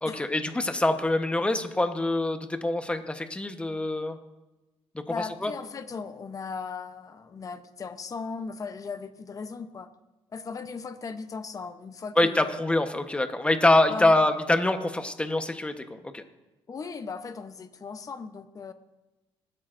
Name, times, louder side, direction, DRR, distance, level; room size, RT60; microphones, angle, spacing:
voice 1, 0.0-4.2 5.2-5.5 12.2-16.2, left 2 dB, 10° left, 7 dB, 1.0 m, -25 dB
voice 2, 5.1-9.9 10.3-12.5 13.9-14.2 16.7-18.7, left 5 dB, 35° left, 9 dB, 0.7 m, -37 dB
20.0 x 12.0 x 2.6 m, 1.1 s
cardioid pair, 100°, 10 cm